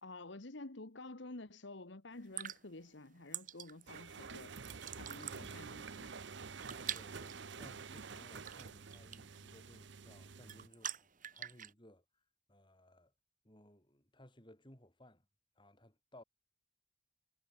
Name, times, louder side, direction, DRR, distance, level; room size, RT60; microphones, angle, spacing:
voice 1, 0.0-4.5 4.9-6.1, left 2 dB, 60° left, 1.4 m, -50 dB
sound 1, 2.1-11.7, right 10 dB, 40° right, 2.4 m, -48 dB
sound 2, 3.9-10.7, right 5 dB, 60° right, 0.8 m, -49 dB
voice 2, 6.7-12.2 12.5-13.1 13.4-15.3 15.6-16.2, left 1 dB, 25° left, 3.6 m, -61 dB
head